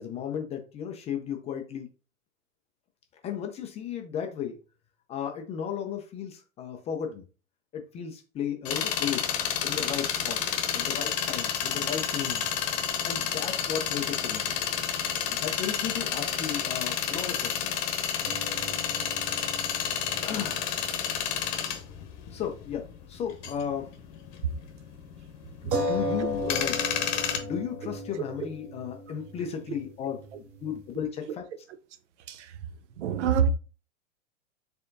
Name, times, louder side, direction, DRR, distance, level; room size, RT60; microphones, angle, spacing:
voice 1, 0.0-1.9 3.2-4.6 5.1-7.2 7.7-9.3 9.6-10.4 10.7-12.5 13.0-14.9 15.3-17.7 18.5-18.7 20.2-20.6 22.3-23.9 25.6-26.8 27.4-30.2 30.6-31.4, left 8 dB, 15° left, 0.4 m, -35 dB
sound 1, 8.7-27.4, left 8 dB, 40° left, 0.9 m, -30 dB
sound 2, 18.2-22.1 22.4-22.5 25.7-30.9, equal, 35° right, 2.0 m, -36 dB
voice 2, 32.3-32.6 33.0-33.5, right 7 dB, 60° right, 0.7 m, -26 dB
4.5 x 3.5 x 2.6 m
hypercardioid pair, 110°, 40 cm